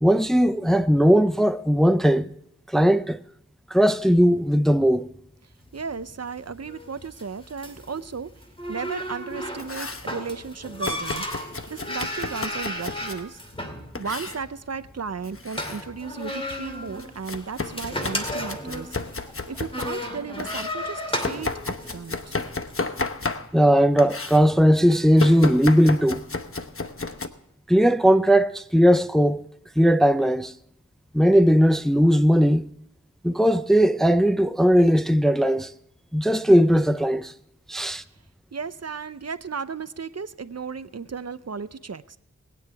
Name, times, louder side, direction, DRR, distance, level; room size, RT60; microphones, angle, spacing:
voice 1, 0.0-2.3 2.7-3.2 3.7-5.1 23.5-26.2 27.7-29.4 29.8-30.5 31.1-32.7 33.2-35.7 36.1-37.3 37.7-38.0, equal, ahead, 0.5 m, -18 dB
sound 1, 5.6-22.9, left 1 dB, 20° left, 2.4 m, -35 dB
voice 2, 5.7-8.3 8.7-11.2 11.7-13.4 14.0-19.2 19.5-22.4 38.5-42.2, right 5 dB, 55° right, 0.7 m, -35 dB
Domestic sounds home sounds, 9.3-10.1 10.8-13.3 13.9-14.4 15.2-15.9 16.2-20.0 20.4-23.7 24.0-24.4 25.2-27.3, left 3 dB, 45° left, 1.0 m, -33 dB
20.5 x 9.5 x 3.4 m
wide cardioid pair, 45°, 29 cm